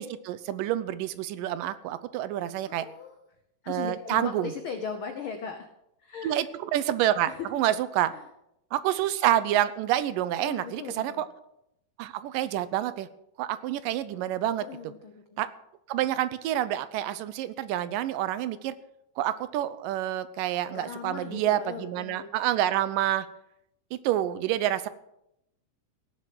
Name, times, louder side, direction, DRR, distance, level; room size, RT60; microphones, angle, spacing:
voice 1, 0.0-2.9 3.7-4.5 6.2-8.1 8.7-11.3 12.0-13.1 13.4-14.7 15.4-15.5 15.9-18.7 19.2-23.3 23.9-24.9, right 12 dB, 85° right, 14 dB, 2.4 m, -28 dB
voice 2, 2.7-3.2 3.6-5.7 6.0-6.5 7.3-7.5 8.1-8.3 10.4-11.2 14.6-15.4 20.7-22.3, left 6 dB, 85° left, 6 dB, 1.1 m, -38 dB
17.0 x 7.5 x 7.7 m, 0.83 s
omnidirectional pair, 3.8 m